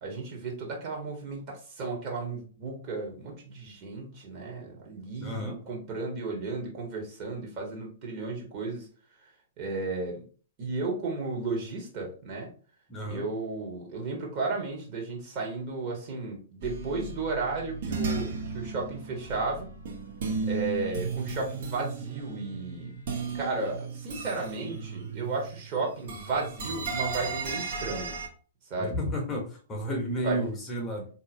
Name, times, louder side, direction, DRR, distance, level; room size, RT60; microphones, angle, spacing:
voice 1, 0.0-8.9 9.6-10.2 10.6-12.5 13.1-19.7 20.4-22.9 23.3-28.2 28.7-29.0 30.2-30.4, right 3 dB, 35° right, -1 dB, 1.3 m, -34 dB
voice 2, 5.2-5.6 12.9-13.3 28.8-31.1, equal, 15° left, 1 dB, 0.9 m, -32 dB
sound 1, 16.6-25.7 25.9-28.3, right 4 dB, 50° right, 0.9 m, -35 dB
4.2 x 2.8 x 2.7 m, 0.40 s
figure-of-eight pair, 110°, 0 cm